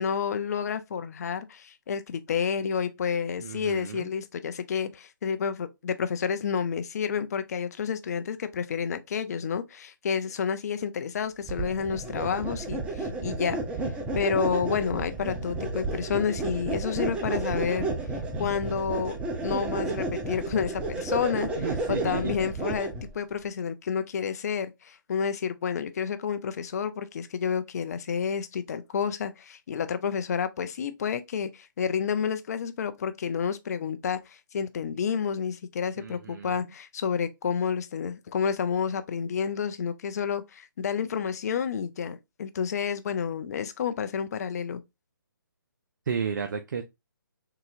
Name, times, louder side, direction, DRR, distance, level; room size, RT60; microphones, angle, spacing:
voice 1, 0.0-13.6 14.1-17.9 18.4-19.2 19.4-44.8, left 7 dB, 50° left, 0.5 m, -30 dB
voice 2, 3.4-4.1 21.6-22.4 36.0-36.6 46.1-46.8, right 6 dB, 60° right, 0.5 m, -33 dB
sound 1, 11.5-23.1, right 3 dB, 10° right, 0.5 m, -32 dB
3.8 x 2.7 x 2.5 m
figure-of-eight pair, 140°, 11 cm